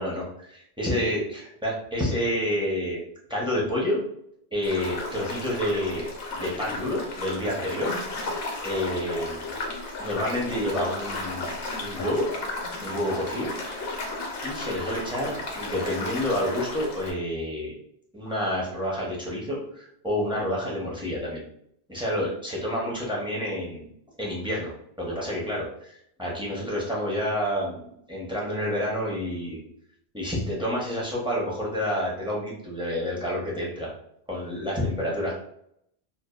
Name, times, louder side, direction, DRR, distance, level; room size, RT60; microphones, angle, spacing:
voice 1, 0.0-3.0 3.3-4.0 4.5-6.1 6.3-7.9 8.6-9.6 10.0-11.5 11.8-12.3 12.8-13.5 14.4-17.8 18.1-21.4 21.9-23.9 24.2-29.6 30.1-33.9 34.3-35.3, left 1 dB, 5° right, -5 dB, 0.5 m, -29 dB
sound 1, 4.6-17.1, left 2 dB, 70° left, 0.8 m, -34 dB
2.6 x 2.1 x 2.2 m, 0.71 s
omnidirectional pair, 1.1 m